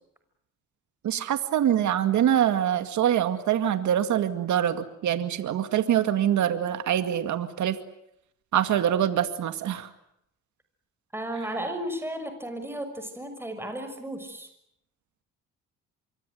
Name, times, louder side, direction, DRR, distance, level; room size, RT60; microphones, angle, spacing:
voice 1, 1.0-7.8 8.5-9.9, right 10 dB, 70° right, 9 dB, 2.2 m, -24 dB
voice 2, 11.1-14.5, right 1 dB, 10° right, 7 dB, 6.2 m, -34 dB
26.5 x 23.5 x 9.2 m, 0.77 s
cardioid pair, 90°, 30 cm